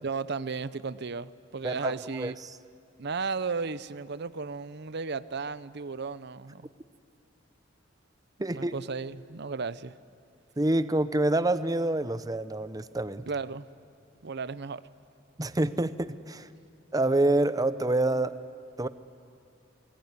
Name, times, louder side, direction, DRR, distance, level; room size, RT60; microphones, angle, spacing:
voice 1, 0.0-2.4 3.0-6.7 8.5-9.9 13.3-13.7 14.2-14.8, right 4 dB, 60° right, 16 dB, 0.7 m, -34 dB
voice 2, 1.6-2.3 8.4-8.7 10.6-13.2 15.4-16.5 16.9-18.4 18.8-18.9, right 2 dB, 20° right, 13 dB, 0.8 m, -27 dB
28.5 x 21.0 x 9.7 m, 2.4 s
head